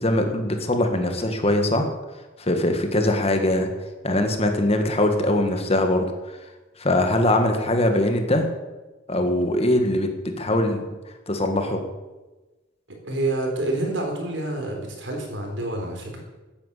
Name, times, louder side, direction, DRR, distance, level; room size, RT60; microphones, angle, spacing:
voice 1, 0.0-1.9 2.4-3.7 4.0-6.4 6.8-8.5 9.1-10.8 11.3-11.8, left 1 dB, 35° left, 5 dB, 1.9 m, -22 dB
voice 2, 12.9-16.2, right 2 dB, 75° right, 2 dB, 4.4 m, -28 dB
13.5 x 9.8 x 8.5 m, 1.2 s
head